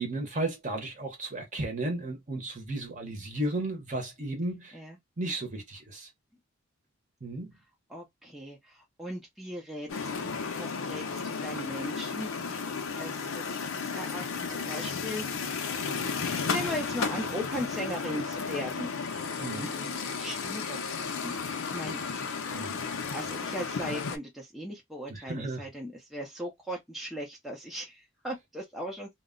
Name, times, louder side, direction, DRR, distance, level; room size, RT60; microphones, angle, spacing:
voice 1, 0.0-4.8 5.2-6.1 7.2-7.5 19.4-19.7 22.5-22.8 25.1-25.6, right 2 dB, 35° right, 0.7 m, -34 dB
voice 2, 7.9-12.6 12.9-15.8 16.5-18.9 19.3-22.0 23.1-29.1, equal, ahead, 0.5 m, -38 dB
sound 1, 9.9-24.2, left 5 dB, 75° left, 0.5 m, -33 dB
2.1 x 2.0 x 3.6 m
head